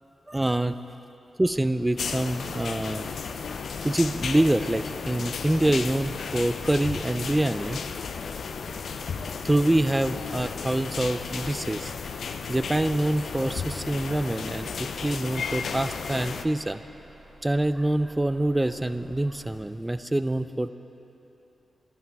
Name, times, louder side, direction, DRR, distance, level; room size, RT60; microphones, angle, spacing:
voice 1, 0.3-0.8 1.4-3.1 3.8-7.8 8.7-8.8 9.4-11.9 12.5-16.8 17.4-20.7, right 1 dB, 20° right, 12 dB, 0.4 m, -25 dB
Bus, 1.4-19.6, right 1 dB, 60° right, 2.0 m, -52 dB
sound 1, 2.0-16.4, left 5 dB, 75° left, 0.4 m, -34 dB
11.5 x 10.5 x 3.5 m, 3.0 s
supercardioid pair, 40°, 0 cm